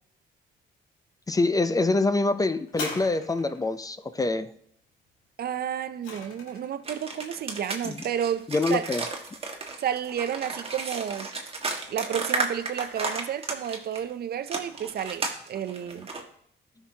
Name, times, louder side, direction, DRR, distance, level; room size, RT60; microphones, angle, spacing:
voice 1, 1.3-4.5 7.8-8.0 8.5-9.1, left 3 dB, 20° left, 0.5 m, -25 dB
sound 1, 2.7-3.7 5.4-6.8 7.6-7.7, left 3 dB, 85° left, 1.9 m, -39 dB
voice 2, 5.4-8.9 9.8-11.3 11.9-16.1, right 9 dB, 50° right, 0.5 m, -31 dB
sound 2, 6.8-14.0 14.5-16.2, right 3 dB, 30° right, 1.6 m, -33 dB
13.0 x 5.9 x 2.8 m
cardioid pair, 90°, 20 cm